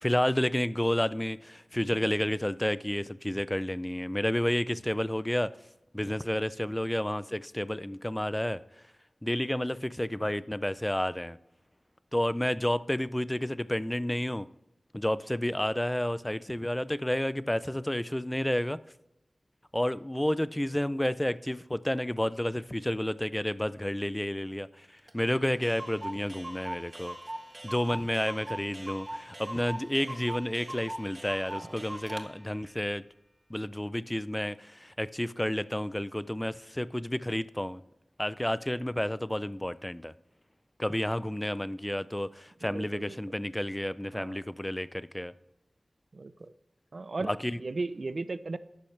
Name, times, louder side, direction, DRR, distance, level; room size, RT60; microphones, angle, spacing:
voice 1, 0.0-5.6 5.9-8.6 9.2-11.4 12.1-14.5 14.9-18.8 19.7-24.9 25.1-27.2 27.6-33.0 33.5-37.8 38.2-40.1 40.8-45.3 47.2-47.6, left 1 dB, 15° left, 0.4 m, -30 dB
Clock, 25.1-25.2 25.3-25.4 25.6-32.3, right 1 dB, 30° right, 1.5 m, -41 dB
voice 2, 42.6-43.2 44.1-44.4 46.1-46.3 46.9-47.3 47.6-48.6, right 3 dB, 65° right, 0.5 m, -36 dB
11.5 x 8.7 x 3.3 m
wide cardioid pair, 50°, 0 cm